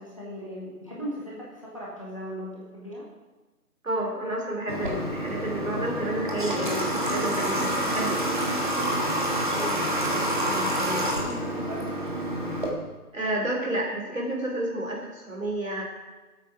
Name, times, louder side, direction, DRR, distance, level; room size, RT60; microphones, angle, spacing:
voice 1, 0.0-3.0 9.4-11.8, equal, 20° left, -5 dB, 1.5 m, -38 dB
voice 2, 3.8-8.3 13.1-15.8, right 1 dB, 55° right, -1 dB, 3.8 m, -30 dB
Water / Water tap faucet, 4.7-12.7, right 1 dB, 30° right, 1.6 m, -27 dB
16.0 x 8.4 x 5.0 m, 1.2 s
figure-of-eight pair, 175°, 47 cm